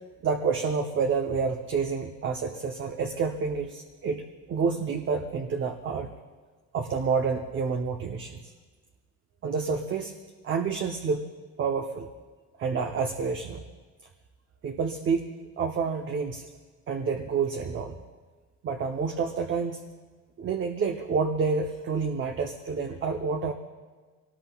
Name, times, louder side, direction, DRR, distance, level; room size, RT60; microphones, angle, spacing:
voice 1, 0.2-6.1 6.7-8.5 9.4-10.1 10.4-11.2 11.6-12.1 12.6-13.6 14.6-16.5 16.9-18.0 18.6-19.8 20.4-23.5, right 5 dB, 40° right, 3 dB, 0.8 m, -28 dB
24.0 x 19.0 x 2.4 m, 1.4 s
cardioid pair, 165°, 31 cm